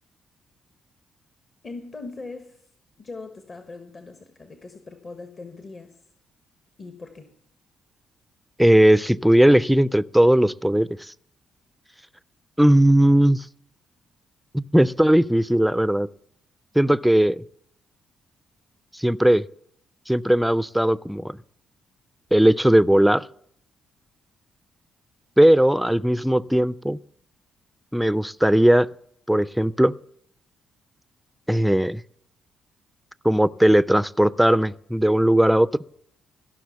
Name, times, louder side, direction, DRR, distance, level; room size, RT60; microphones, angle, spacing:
voice 1, 1.6-2.7 3.0-6.0 6.8-7.3, left 3 dB, 45° left, 1.2 m, -40 dB
voice 2, 8.6-10.9 12.6-13.5 14.5-16.1 16.8-17.4 18.9-19.4 20.1-21.4 22.3-23.2 25.4-27.0 27.9-28.9 29.3-29.9 31.5-32.0 33.2-35.7, right 1 dB, 5° right, 0.4 m, -18 dB
15.5 x 6.2 x 7.1 m
hypercardioid pair, 45°, 0 cm